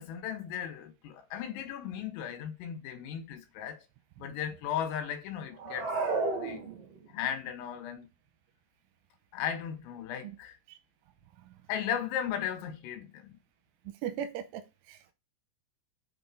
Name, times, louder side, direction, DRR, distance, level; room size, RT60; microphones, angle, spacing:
voice 1, 0.0-3.8 4.2-5.9 6.3-6.7 7.1-8.1 9.3-10.6 11.7-13.4, left 9 dB, 80° left, 4.1 m, -36 dB
sound 1, 5.5-7.2, right 3 dB, 50° right, 1.9 m, -32 dB
voice 2, 14.0-15.1, right 9 dB, 80° right, 3.1 m, -38 dB
6.7 x 6.3 x 4.8 m
omnidirectional pair, 5.9 m